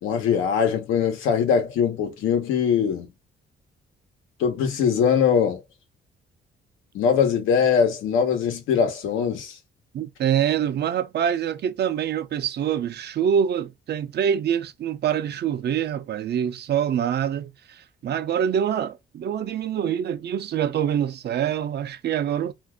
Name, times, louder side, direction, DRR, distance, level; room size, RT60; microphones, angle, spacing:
voice 1, 0.0-3.1 4.4-5.6 6.9-9.6, left 7 dB, 90° left, 1.0 m, -22 dB
voice 2, 9.9-22.5, right 9 dB, 55° right, 0.6 m, -25 dB
2.6 x 2.4 x 3.5 m
cardioid pair, 90°, 20 cm